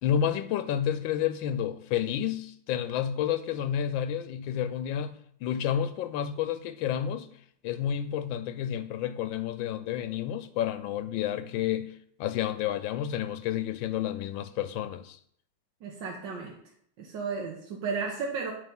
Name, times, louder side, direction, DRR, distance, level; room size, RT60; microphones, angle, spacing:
voice 1, 0.0-7.3 7.6-11.9 12.2-15.2, left 10 dB, 85° left, 1.4 m, -30 dB
voice 2, 15.8-16.6 17.0-18.5, right 5 dB, 75° right, 1.7 m, -33 dB
10.5 x 3.6 x 5.4 m
omnidirectional pair, 2.1 m